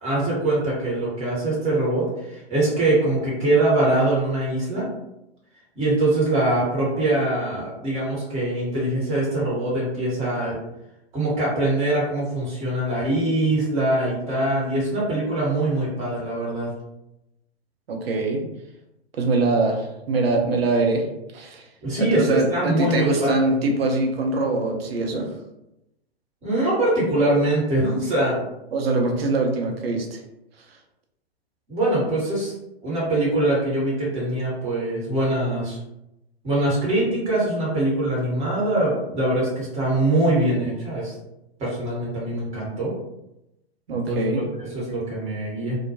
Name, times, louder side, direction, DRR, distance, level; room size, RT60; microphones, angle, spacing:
voice 1, 0.0-4.9 5.7-10.6 11.1-16.7 21.8-23.3 26.4-28.4 31.7-32.5 32.8-35.8 36.4-41.1 41.6-42.9 43.9-45.8, right 1 dB, 20° right, -6 dB, 1.1 m, -23 dB
voice 2, 17.9-18.4 19.2-21.1 21.3-21.7 22.0-25.3 28.7-30.2 43.9-44.4, right 3 dB, 65° right, 2 dB, 0.7 m, -23 dB
2.2 x 2.1 x 2.8 m, 0.88 s
figure-of-eight pair, 115°, 32 cm